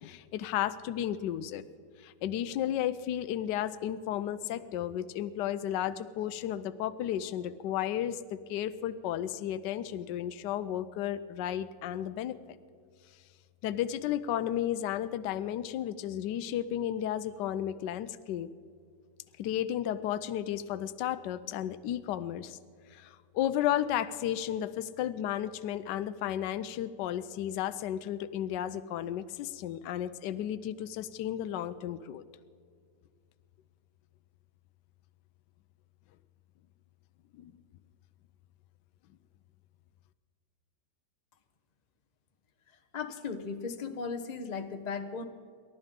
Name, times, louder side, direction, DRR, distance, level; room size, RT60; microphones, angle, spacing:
voice 1, 0.0-1.6 2.0-8.2 8.5-12.6 13.6-18.5 19.4-22.6 22.9-32.2 37.4-37.5, left 11 dB, 75° left, 12 dB, 1.2 m, -33 dB
voice 2, 42.9-45.2, left 5 dB, 35° left, 7 dB, 0.7 m, -36 dB
29.0 x 12.5 x 3.7 m, 2.2 s
omnidirectional pair, 1.9 m